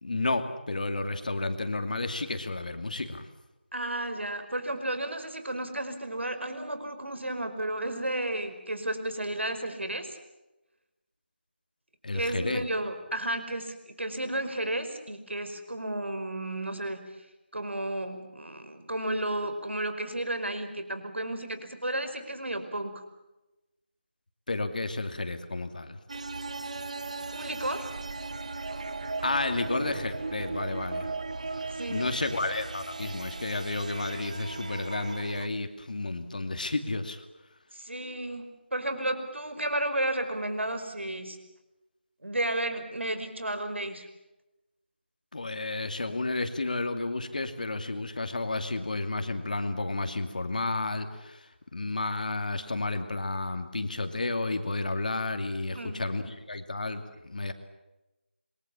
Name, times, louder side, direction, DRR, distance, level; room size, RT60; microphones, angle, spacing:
voice 1, 0.0-3.3 12.0-12.6 24.5-26.0 29.2-31.1 31.5-37.3 45.3-57.5, left 2 dB, 45° left, 8 dB, 2.6 m, -32 dB
voice 2, 3.7-10.2 12.1-17.1 17.5-23.0 27.3-27.9 31.7-32.0 37.7-41.4 42.2-44.1 55.7-56.0, right 1 dB, 80° right, 9 dB, 5.3 m, -33 dB
sound 1, 26.1-35.5, right 3 dB, 35° right, 0.9 m, -37 dB
27.0 x 23.0 x 7.3 m, 0.99 s
figure-of-eight pair, 175°, 6 cm